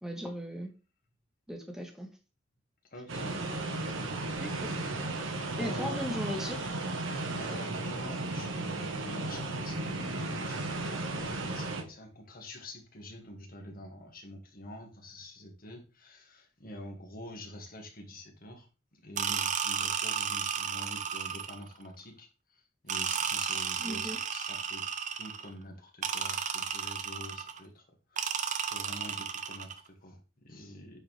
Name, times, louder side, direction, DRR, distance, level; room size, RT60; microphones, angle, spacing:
voice 1, 0.0-0.7 1.5-2.1 4.4-4.7 5.6-6.7 23.8-24.2, equal, ahead, 3 dB, 1.5 m, -37 dB
voice 2, 2.9-4.6 5.2-6.0 7.1-18.7 18.9-24.8 25.1-27.8 28.1-28.3 28.7-31.0, left 1 dB, 50° left, 2 dB, 2.0 m, -46 dB
sound 1, 3.1-11.8, right 2 dB, 80° right, 1.4 m, -35 dB
sound 2, 19.2-21.7 22.9-25.5 26.0-27.6 28.2-29.8, right 7 dB, 40° right, 0.7 m, -33 dB
9.6 x 4.7 x 3.4 m, 0.32 s
head